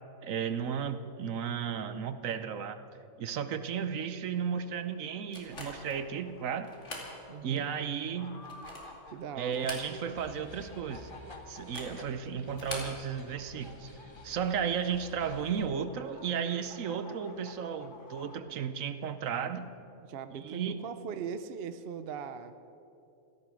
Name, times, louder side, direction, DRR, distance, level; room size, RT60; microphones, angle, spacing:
voice 1, 0.2-2.8 3.2-6.7 7.4-8.4 9.4-11.1 11.5-13.9 14.2-19.7 20.4-20.8, right 7 dB, 70° right, 11 dB, 1.2 m, -34 dB
sound 1, 5.3-6.0 6.6-7.1 7.6-7.7 8.3-9.0 9.5-10.3 10.5-10.6 11.6-12.0 12.5-13.0, left 1 dB, 55° left, 2.9 m, -42 dB
sound 2, 5.5-18.4, left 2 dB, 40° left, 1.5 m, -53 dB
voice 2, 7.3-7.7 9.1-9.7 20.0-22.6, right 7 dB, 55° right, 11 dB, 0.8 m, -40 dB
sound 3, 10.2-15.7, left 2 dB, 20° left, 1.0 m, -52 dB
16.0 x 14.0 x 6.3 m, 2.8 s
omnidirectional pair, 1.5 m